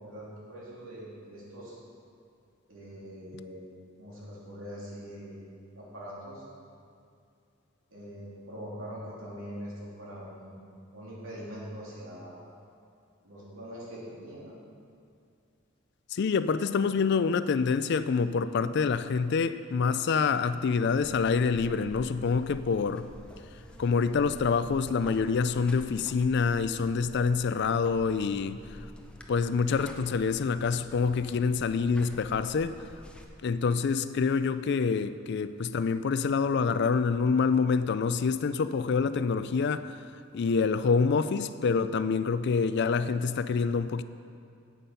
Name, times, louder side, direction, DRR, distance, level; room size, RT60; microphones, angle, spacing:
voice 1, 0.0-1.8 2.7-3.6 4.0-5.3 5.7-6.4 7.9-10.6 10.9-12.5 13.2-14.5, equal, 80° right, -6 dB, 3.1 m, -43 dB
voice 2, 16.1-23.0 23.8-28.6 29.3-32.7 33.4-39.8 40.3-44.0, left 5 dB, 55° left, 13 dB, 0.4 m, -26 dB
Buzz, 21.0-33.2, equal, 5° left, 0.7 m, -48 dB
9.2 x 8.5 x 5.7 m, 2.4 s
head